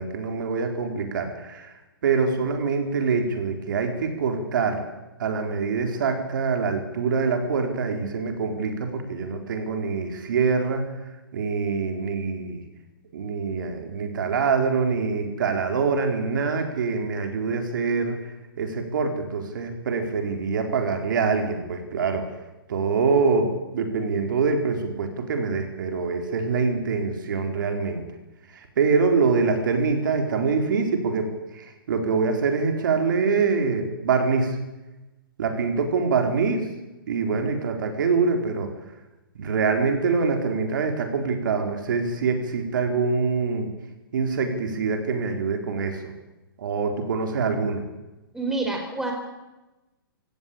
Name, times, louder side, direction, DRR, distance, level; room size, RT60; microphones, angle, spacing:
voice 1, 0.0-1.7 2.0-4.9 5.2-10.8 11.3-12.6 13.1-18.2 18.6-22.3 22.7-28.0 28.5-34.6 35.4-36.7 37.1-38.7 39.3-43.7 44.1-46.1 46.6-47.8, right 4 dB, 60° right, 5 dB, 4.1 m, -25 dB
voice 2, 48.3-49.1, right 2 dB, 5° right, 2 dB, 4.5 m, -27 dB
23.0 x 16.5 x 8.7 m, 1.1 s
figure-of-eight pair, 125°, 12 cm